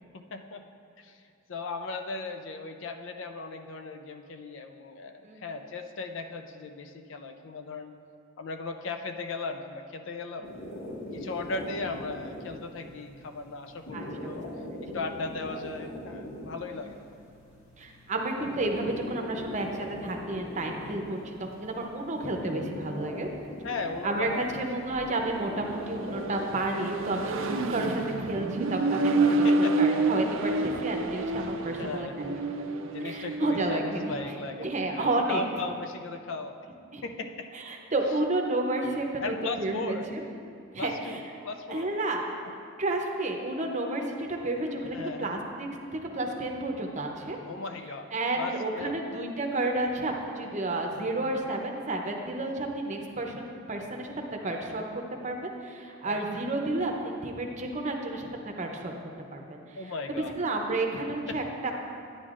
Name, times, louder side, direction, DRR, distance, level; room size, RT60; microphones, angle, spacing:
voice 1, 0.1-0.6 1.0-1.2 1.5-7.9 8.4-10.5 11.1-14.4 14.9-17.0 23.6-24.7 25.0-25.1 29.3-29.8 31.4-32.2 32.8-36.5 37.0-37.5 39.2-40.1 40.8-42.0 42.5-42.6 44.9-45.4 47.4-49.0 56.1-56.2 59.7-60.4 60.9-61.4, left 3 dB, 65° left, 6 dB, 0.5 m, -37 dB
sound 1, 10.4-28.4, left 1 dB, 80° left, 1.7 m, -42 dB
voice 2, 17.8-23.3 24.0-32.3 32.6-32.7 33.0-34.2 34.6-35.4 36.9-37.0 37.5-40.9 41.7-47.4 48.1-54.1 54.4-58.3 58.6-58.9 59.3-59.6 60.1-61.7, right 2 dB, 35° right, 2 dB, 0.7 m, -31 dB
Accelerating revving vroom, 24.0-34.4, right 2 dB, 70° right, 0.5 m, -29 dB
9.7 x 9.6 x 2.5 m, 2.4 s
head